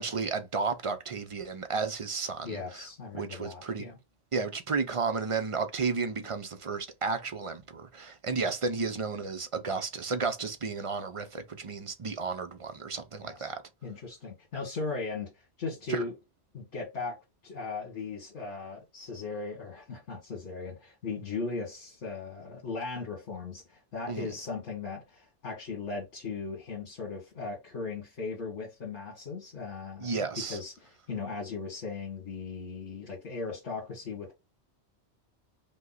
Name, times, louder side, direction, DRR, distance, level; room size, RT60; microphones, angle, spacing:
voice 1, 0.0-2.9 3.1-3.9 4.3-13.6 15.9-16.1 24.1-24.3 30.0-30.6, right 4 dB, 40° right, 0.5 m, -33 dB
voice 2, 2.4-4.0 13.2-13.5 13.8-16.1 16.5-17.2 17.4-34.3, left 4 dB, 85° left, 1.9 m, -38 dB
5.2 x 2.2 x 3.9 m
omnidirectional pair, 1.2 m